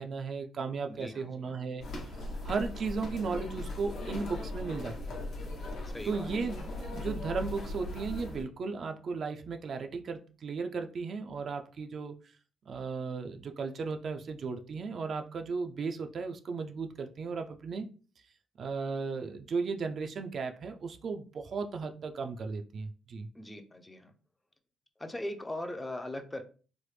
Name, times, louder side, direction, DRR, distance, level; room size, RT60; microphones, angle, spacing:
voice 1, 0.0-1.8 2.4-5.2 6.0-12.2 12.7-17.9 18.6-23.3, right 4 dB, 55° right, 0.4 m, -35 dB
voice 2, 0.9-1.5 5.8-6.3 23.3-24.1 25.0-26.4, left 1 dB, 15° left, 0.5 m, -40 dB
sound 1, 1.8-8.4, left 1 dB, 70° left, 1.0 m, -39 dB
3.2 x 2.0 x 3.1 m
cardioid pair, 90°, 0 cm